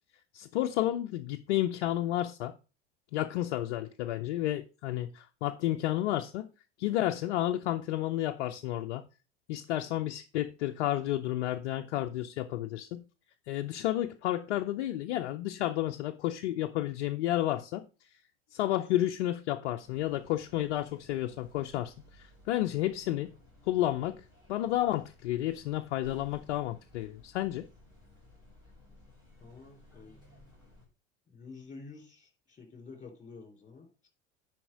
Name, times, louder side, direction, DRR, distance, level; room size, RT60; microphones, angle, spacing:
voice 1, 0.3-2.5 3.1-6.5 6.8-9.0 9.5-13.0 13.5-17.8 18.5-23.3 23.7-24.2 24.5-27.7, left 14 dB, 65° left, 0.6 m, -31 dB
sound 1, 19.8-30.9, left 1 dB, 10° right, 5.6 m, -58 dB
voice 2, 29.4-30.2 31.3-34.1, left 4 dB, 20° left, 3.4 m, -50 dB
10.0 x 4.3 x 5.0 m
figure-of-eight pair, 75°, 34 cm